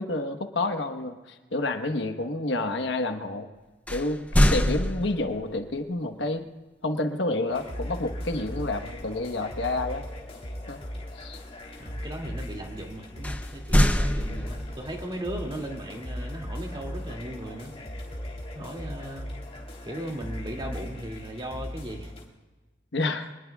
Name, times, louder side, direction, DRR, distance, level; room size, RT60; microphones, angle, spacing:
voice 1, 0.0-3.5 3.9-6.4 6.8-10.0 10.7-10.8 11.2-11.4 14.2-14.5 22.9-23.3, left 2 dB, 85° left, 7 dB, 1.3 m, -29 dB
sound 1, 3.9-5.5 8.3-8.6 9.0-9.2 13.2-14.9, equal, 10° left, 0.7 m, -24 dB
sound 2, 7.5-22.2, equal, 35° left, 3.4 m, -38 dB
voice 2, 11.8-17.7 18.5-19.3 19.8-22.1, right 1 dB, 25° right, 1 dB, 2.5 m, -37 dB
26.5 x 20.5 x 2.4 m, 1.2 s
head